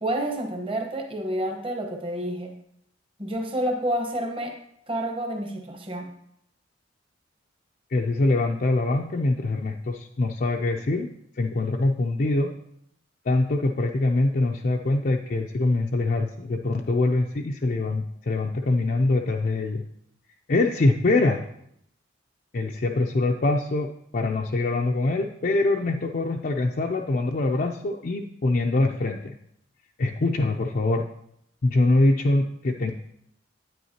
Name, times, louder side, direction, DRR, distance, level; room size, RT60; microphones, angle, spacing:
voice 1, 0.0-2.5 3.2-4.5 4.9-6.1, right 1 dB, 30° right, 3 dB, 1.1 m, -29 dB
voice 2, 7.9-11.1 11.4-12.6 13.3-19.8 20.5-21.4 22.5-29.4 30.0-31.1 31.6-32.9, left 2 dB, 45° left, 1 dB, 0.4 m, -24 dB
9.3 x 9.0 x 2.8 m, 0.72 s
head